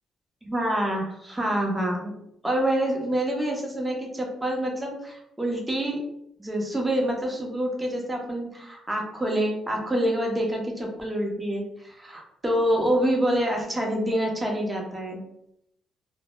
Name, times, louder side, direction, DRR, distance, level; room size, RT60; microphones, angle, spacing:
voice 1, 0.4-2.1 2.4-6.0 6.4-15.2, right 1 dB, 15° right, 0 dB, 0.7 m, -27 dB
2.1 x 2.1 x 2.9 m, 0.77 s
cardioid pair, 90°, 0 cm